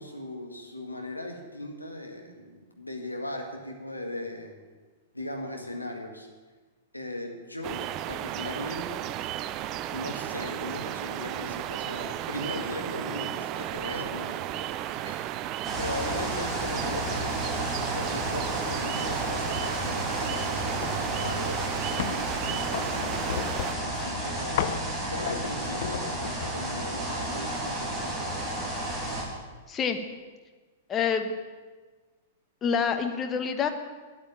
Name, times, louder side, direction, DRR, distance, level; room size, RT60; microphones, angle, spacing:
voice 1, 0.0-4.6 5.1-6.3 6.9-9.0 9.9-15.5 15.8-23.5 23.8-28.4, left 1 dB, 85° left, 2 dB, 1.8 m, -38 dB
sound 1, 7.6-23.8, right 12 dB, 35° right, 0.4 m, -34 dB
sound 2, 15.6-29.2, right 1 dB, ahead, 3.0 m, -32 dB
sound 3, 20.8-21.1 21.5-22.3 22.7-23.9 24.6-24.9 25.3-26.6, left 11 dB, 50° left, 0.6 m, -34 dB
voice 2, 29.7-30.0 30.9-31.3 32.6-33.7, left 6 dB, 20° left, 7 dB, 1.2 m, -27 dB
9.7 x 8.7 x 8.7 m, 1.4 s
figure-of-eight pair, 100°, 0 cm